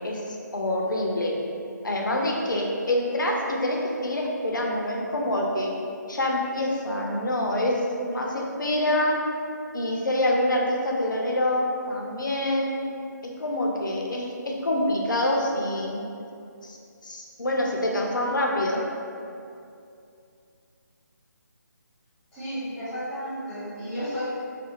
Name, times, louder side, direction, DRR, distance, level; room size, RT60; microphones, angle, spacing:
voice 1, 0.0-1.3 1.8-5.7 6.1-9.2 9.7-12.7 13.2-16.0 16.6-16.8 17.0-18.8, left 1 dB, 85° left, -1 dB, 0.5 m, -26 dB
voice 2, 22.3-24.2, equal, 5° left, -14 dB, 0.8 m, -33 dB
2.5 x 2.3 x 2.7 m, 2.5 s
figure-of-eight pair, 155°, 10 cm